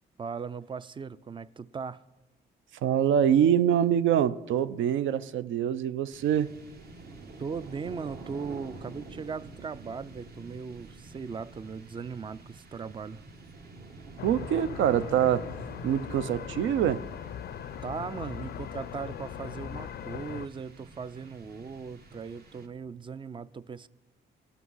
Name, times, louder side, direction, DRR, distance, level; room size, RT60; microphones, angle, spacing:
voice 1, 0.2-2.0 7.4-13.2 17.8-23.9, right 5 dB, 25° right, 0.3 m, -38 dB
voice 2, 2.8-6.5 14.2-15.5 15.8-17.0, right 9 dB, 80° right, 0.5 m, -25 dB
sound 1, 6.1-23.1, right 3 dB, 50° right, 1.2 m, -48 dB
sound 2, 14.2-20.5, left 10 dB, 55° left, 0.4 m, -40 dB
17.5 x 6.0 x 5.5 m
cardioid pair, 90°, 20 cm